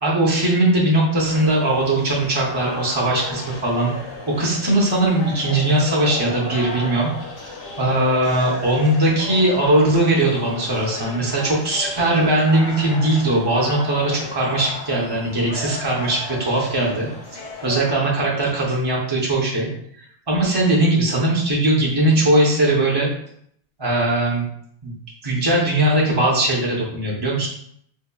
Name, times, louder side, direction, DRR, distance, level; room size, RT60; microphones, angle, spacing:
voice 1, 0.0-3.9 4.4-7.1 7.4-19.7 20.3-23.1 23.8-24.5 24.8-24.9 25.2-27.5, right 1 dB, 30° right, -4 dB, 0.6 m, -20 dB
sound 1, 1.2-17.9, left 3 dB, 85° left, 1.0 m, -35 dB
4.1 x 2.7 x 2.2 m, 0.66 s
omnidirectional pair, 1.0 m